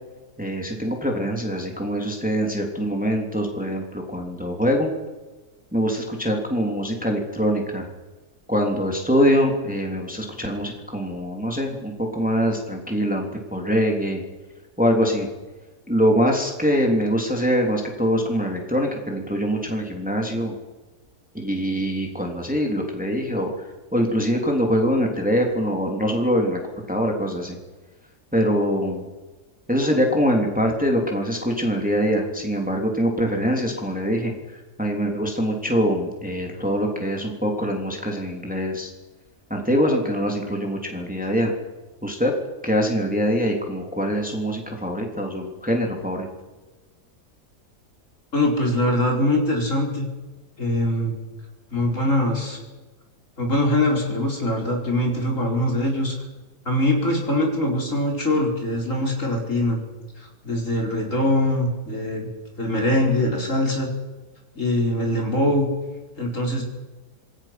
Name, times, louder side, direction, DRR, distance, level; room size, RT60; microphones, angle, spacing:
voice 1, 0.4-4.9 5.7-7.9 8.5-14.2 14.8-15.3 15.9-20.5 21.3-23.5 23.9-26.6 26.9-27.6 28.3-29.0 29.7-38.9 39.5-41.5 42.0-42.3 42.6-46.3, equal, 5° right, 1 dB, 3.2 m, -23 dB
voice 2, 48.3-50.1 50.6-51.2 51.7-52.6 53.4-56.1 56.6-59.8 60.2-62.3 62.6-63.9 64.5-65.7 66.2-66.6, left 1 dB, 50° left, 0 dB, 4.9 m, -22 dB
26.5 x 20.5 x 6.0 m, 1.2 s
omnidirectional pair, 1.8 m